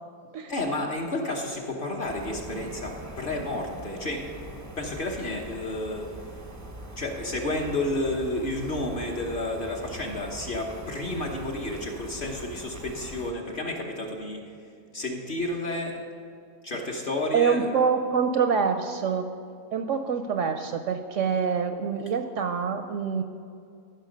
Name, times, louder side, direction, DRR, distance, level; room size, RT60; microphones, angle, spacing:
voice 1, 0.5-6.1 7.0-14.4 14.9-16.0 16.6-17.7, left 2 dB, 40° left, 1 dB, 1.1 m, -31 dB
sound 1, 2.0-13.3, right 1 dB, 15° right, 0.6 m, -42 dB
voice 2, 17.3-19.3 19.7-23.2, right 6 dB, 70° right, 7 dB, 0.8 m, -25 dB
14.5 x 6.0 x 5.2 m, 2.4 s
omnidirectional pair, 1.6 m